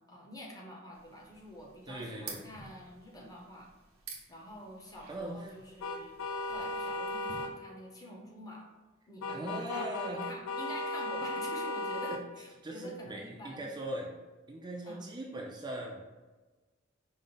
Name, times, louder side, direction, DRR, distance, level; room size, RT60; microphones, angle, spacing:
voice 1, 0.0-3.7 4.3-6.1 6.5-8.7 9.1-13.7 14.8-15.1, equal, 20° left, -1 dB, 0.8 m, -47 dB
sound 1, 0.9-7.4, right 4 dB, 85° right, 0.9 m, -51 dB
voice 2, 1.9-2.4 5.1-5.5 9.3-10.2 12.1-12.2 12.6-14.1 14.5-16.2, right 1 dB, 20° right, -1 dB, 0.4 m, -40 dB
sound 2, 5.8-7.5 9.2-12.2, left 2 dB, 80° left, 0.4 m, -36 dB
5.1 x 2.1 x 3.8 m, 1.2 s
head